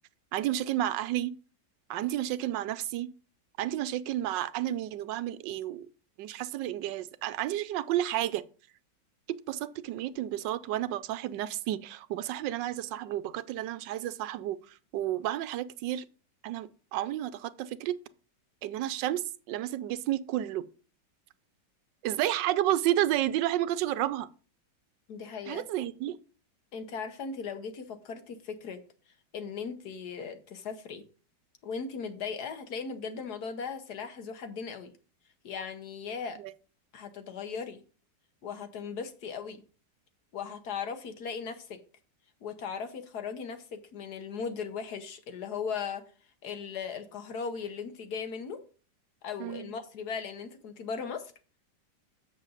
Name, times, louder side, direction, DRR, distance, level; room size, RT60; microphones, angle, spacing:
voice 1, 0.3-1.3 1.9-3.1 3.6-5.9 6.2-8.4 9.3-16.0 16.4-18.0 18.6-20.7 22.0-24.3 25.5-26.2 36.4-36.5 49.4-49.7, right 13 dB, 90° right, 1.3 m, -31 dB
voice 2, 25.1-25.7 26.7-28.8 29.3-31.0 31.6-34.9 35.4-36.4 36.9-37.8 38.4-39.6 40.3-41.8 42.4-46.0 46.4-48.6 49.2-51.3, left 6 dB, 65° left, 1.5 m, -38 dB
7.3 x 6.7 x 3.9 m
omnidirectional pair, 1.9 m